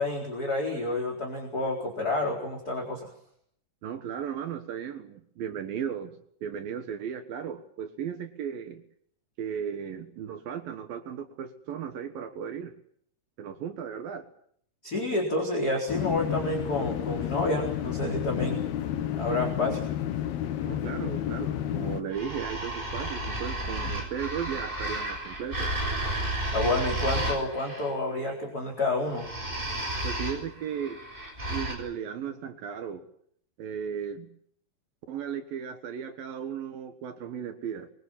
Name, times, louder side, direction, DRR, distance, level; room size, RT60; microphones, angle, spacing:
voice 1, 0.0-3.1 14.8-18.6 19.1-19.8 26.5-29.3, left 2 dB, 25° left, 0 dB, 4.1 m, -29 dB
voice 2, 3.8-6.2 6.4-8.8 9.4-12.7 13.4-14.3 20.6-25.7 30.0-31.0 31.5-33.1 33.6-34.3 35.1-37.9, right 8 dB, 65° right, 7 dB, 2.9 m, -36 dB
sound 1, 15.9-22.0, left 11 dB, 75° left, 3.1 m, -31 dB
sound 2, 22.1-27.9 29.1-31.7, right 1 dB, 10° right, 7.3 m, -32 dB
24.5 x 23.5 x 7.3 m, 0.67 s
omnidirectional pair, 4.7 m